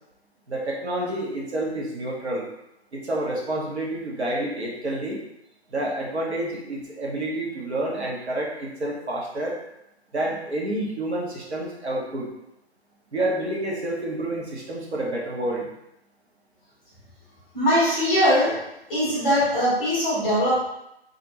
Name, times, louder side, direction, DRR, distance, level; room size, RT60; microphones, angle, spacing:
voice 1, 0.5-2.5 2.9-5.2 5.7-9.6 10.1-12.3 13.1-15.7, right 1 dB, 80° right, -3 dB, 0.9 m, -29 dB
voice 2, 17.5-18.6 18.9-20.6, equal, 5° left, -9 dB, 0.5 m, -21 dB
2.4 x 2.1 x 2.8 m, 0.84 s
figure-of-eight pair, 140°, 33 cm